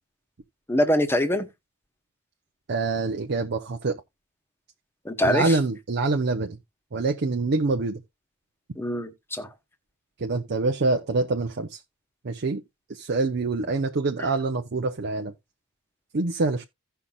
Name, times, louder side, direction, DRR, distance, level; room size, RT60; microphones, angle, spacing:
voice 1, 0.7-1.5 5.0-5.6 8.8-9.5, left 1 dB, 10° left, 1.0 m, -24 dB
voice 2, 2.7-4.0 5.2-6.6 6.9-8.0 10.2-11.8 12.2-12.6 12.9-15.3 16.1-16.6, right 3 dB, 50° right, 0.7 m, -25 dB
16.0 x 5.7 x 2.3 m
head